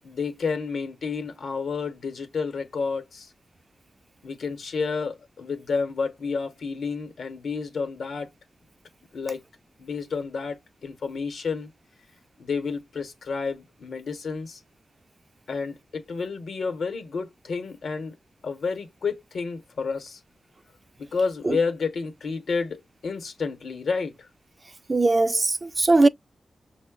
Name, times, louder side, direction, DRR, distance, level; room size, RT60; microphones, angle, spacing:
voice 1, 0.0-3.3 4.2-8.3 9.1-9.4 9.8-11.7 12.4-14.6 15.5-18.2 18.4-20.2 21.0-24.3, left 5 dB, 80° left, 0.8 m, -30 dB
voice 2, 24.9-26.1, right 2 dB, 40° right, 0.3 m, -20 dB
5.7 x 2.1 x 2.2 m
cardioid pair, 50°, 0 cm